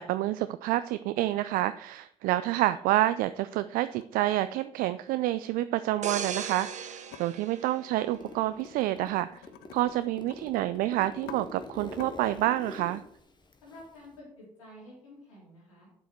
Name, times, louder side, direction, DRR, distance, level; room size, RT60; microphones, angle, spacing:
voice 1, 0.0-9.4 9.7-13.0, right 15 dB, 65° right, 13 dB, 0.4 m, -28 dB
sound 1, 3.3-3.7 4.0-5.4 7.1-7.2 8.6-8.9 9.2-10.4 10.7-10.8 11.1-11.4 11.9-12.1, left 12 dB, 70° left, 0.6 m, -49 dB
sound 2, 6.0-8.7 9.2-9.4, right 7 dB, 50° right, 1.0 m, -38 dB
Zipper (clothing), 8.1-9.2 9.5-14.2, left 3 dB, 30° left, 1.6 m, -45 dB
voice 2, 13.6-15.9, left 1 dB, 90° left, -6 dB, 4.1 m, -50 dB
8.2 x 7.6 x 4.6 m, 0.70 s
hypercardioid pair, 45°, 16 cm